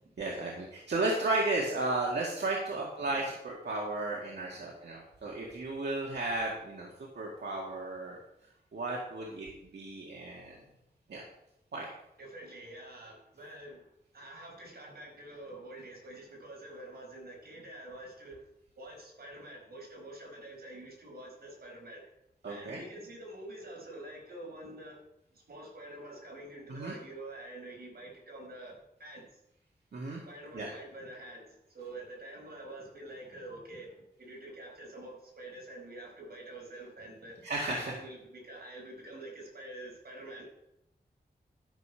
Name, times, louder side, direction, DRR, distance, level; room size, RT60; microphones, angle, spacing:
voice 1, 0.2-8.2 8.7-9.5 9.7-10.6 11.1-11.2 11.7-11.9 22.4-22.9 26.7-27.0 29.9-30.2 30.5-30.7 37.4-38.0, right 2 dB, 90° right, -3 dB, 1.9 m, -34 dB
voice 2, 12.2-13.8 14.1-18.4 18.8-22.0 22.5-25.0 25.3-29.2 30.3-33.9 34.2-40.4, right 1 dB, 65° right, -1 dB, 4.8 m, -47 dB
12.5 x 6.6 x 5.6 m, 0.84 s
wide cardioid pair, 110°, 17 cm